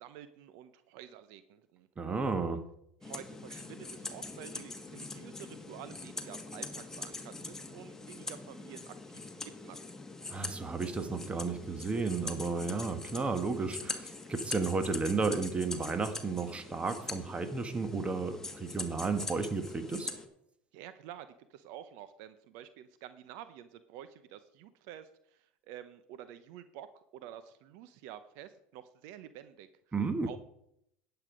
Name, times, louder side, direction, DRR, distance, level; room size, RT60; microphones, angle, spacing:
voice 1, 0.0-1.9 3.0-9.8 20.7-29.7 30.2-30.4, right 11 dB, 70° right, 12 dB, 0.8 m, -49 dB
voice 2, 2.0-2.6 10.3-20.1 29.9-30.4, right 4 dB, 20° right, 9 dB, 1.5 m, -33 dB
sound 1, 3.0-20.3, left 3 dB, 10° left, 1.7 m, -43 dB
11.0 x 8.1 x 5.2 m, 0.76 s
supercardioid pair, 95°, 5 cm